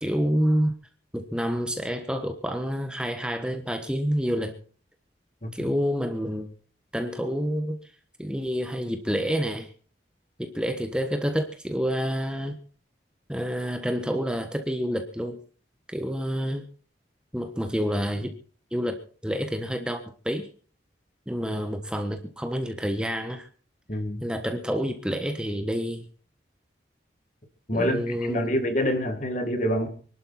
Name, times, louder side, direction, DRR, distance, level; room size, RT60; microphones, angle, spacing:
voice 1, 0.0-0.8 1.1-4.6 5.5-6.5 6.9-7.9 8.2-9.7 10.4-12.6 13.3-15.4 15.9-16.6 17.3-18.3 18.7-19.0 19.2-20.5 21.3-23.5 24.2-26.1 27.7-28.5, equal, 5° right, 6 dB, 1.2 m, -28 dB
voice 2, 23.9-24.2 27.7-29.9, equal, 40° left, 7 dB, 2.2 m, -26 dB
25.0 x 12.0 x 4.2 m, 0.43 s
head